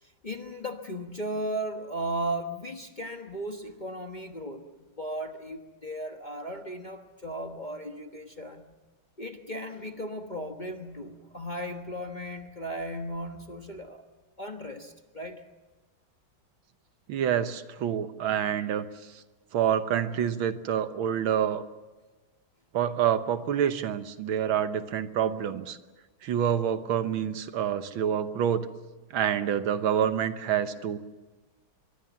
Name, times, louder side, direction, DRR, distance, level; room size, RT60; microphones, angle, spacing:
voice 1, 0.0-4.6 5.0-8.7 9.2-14.0 14.4-15.4, right 1 dB, 25° left, 4 dB, 1.1 m, -36 dB
voice 2, 17.1-18.9 19.5-21.6 22.7-25.8 26.2-28.7 29.1-31.0, right 9 dB, 80° right, 11 dB, 1.8 m, -27 dB
23.5 x 23.5 x 7.2 m, 1.2 s
omnidirectional pair, 2.2 m